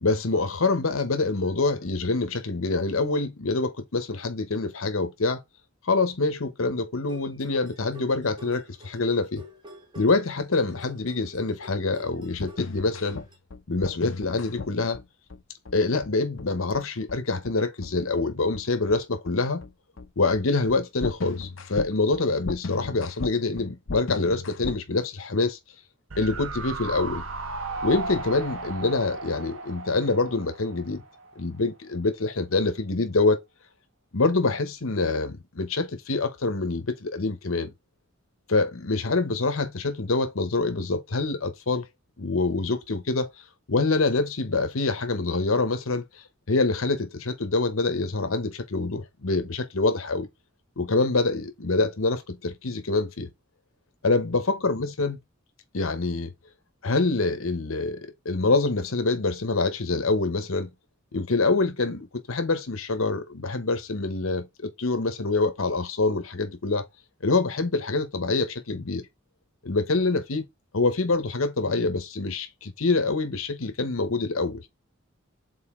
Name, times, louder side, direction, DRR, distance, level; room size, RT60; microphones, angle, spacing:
voice 1, 0.0-5.4 5.8-9.4 10.0-13.2 13.7-15.0 15.7-19.6 20.2-25.6 26.2-27.2 27.8-31.0 31.4-33.4 34.1-37.7 38.5-41.9 42.2-43.3 43.7-50.3 50.8-53.3 54.0-55.2 55.7-56.3 56.8-60.7 61.1-66.8 67.2-69.0 69.6-70.5 70.7-74.6, left 3 dB, 85° left, 1.0 m, -25 dB
sound 1, 7.0-13.4, left 1 dB, 25° right, 1.3 m, -48 dB
sound 2, 12.1-24.8, left 3 dB, 65° left, 0.7 m, -36 dB
sound 3, 26.1-31.3 31.6-31.7, right 3 dB, 80° right, 1.1 m, -35 dB
6.4 x 4.0 x 3.7 m
head